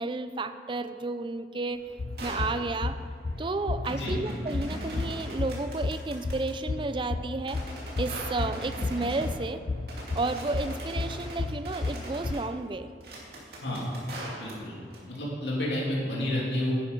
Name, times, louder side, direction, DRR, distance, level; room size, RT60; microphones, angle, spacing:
voice 1, 0.0-1.8 2.2-3.0 3.4-7.6 8.0-9.6 10.1-12.9, right 3 dB, 30° right, 11 dB, 0.4 m, -32 dB
sound 1, 1.7-15.0, right 1 dB, 60° right, 2.4 m, -42 dB
sound 2, 2.0-12.3, left 3 dB, 40° left, 0.4 m, -33 dB
voice 2, 14.3-14.7 15.1-16.7, left 1 dB, 80° left, -4 dB, 2.9 m, -30 dB
10.5 x 9.4 x 5.3 m, 2.1 s
head